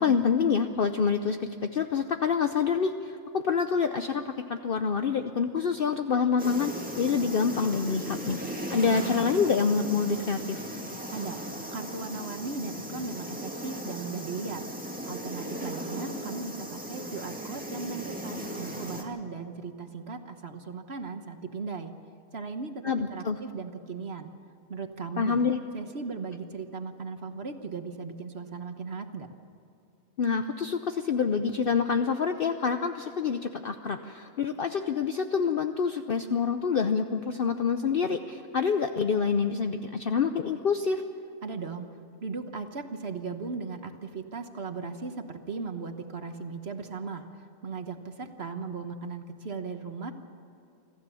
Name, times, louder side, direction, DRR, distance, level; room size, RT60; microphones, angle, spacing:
voice 1, 0.0-8.4 8.7-10.6 22.8-23.4 25.2-25.6 30.2-41.0, left 6 dB, 50° left, 7 dB, 0.8 m, -27 dB
sound 1, 6.4-19.0, equal, 5° right, 2.3 m, -37 dB
voice 2, 11.7-14.6 15.1-21.9 22.3-24.3 24.7-25.4 25.7-29.3 41.4-41.9 42.2-47.3 47.6-50.1, right 4 dB, 55° right, 7 dB, 1.3 m, -37 dB
25.5 x 14.5 x 7.0 m, 2.7 s
omnidirectional pair, 1.3 m